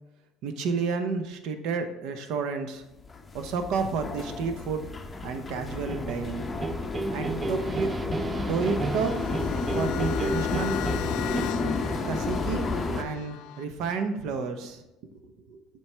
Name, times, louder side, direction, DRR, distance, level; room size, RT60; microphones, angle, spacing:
voice 1, 0.4-2.8 3.3-4.9 5.2-6.5 7.1-7.9 8.3-9.2 9.7-10.8 12.0-12.7 12.9-14.8 15.1-15.6, right 5 dB, 70° right, 7 dB, 0.8 m, -30 dB
sound 1, 3.0-13.0, left 3 dB, 20° left, 0.6 m, -31 dB
sound 2, 5.6-11.4, right 3 dB, 25° right, 0.3 m, -33 dB
sound 3, 8.6-13.6, left 14 dB, 80° left, 0.4 m, -37 dB
7.3 x 4.6 x 3.3 m, 0.94 s
supercardioid pair, 110°, 0 cm